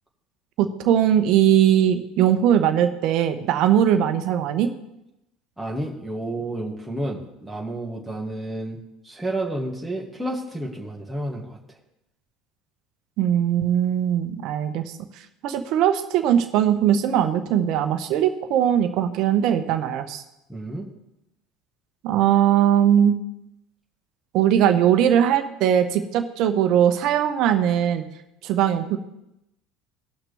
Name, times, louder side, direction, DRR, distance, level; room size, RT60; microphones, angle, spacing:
voice 1, 0.6-4.7 13.2-14.9 15.4-20.2 22.0-23.2 24.3-28.0 28.4-29.0, right 10 dB, 60° right, 9 dB, 0.9 m, -20 dB
voice 2, 5.6-11.6 20.5-20.9, right 1 dB, ahead, -4 dB, 2.1 m, -31 dB
17.5 x 5.9 x 3.5 m, 0.88 s
hypercardioid pair, 75°, 0 cm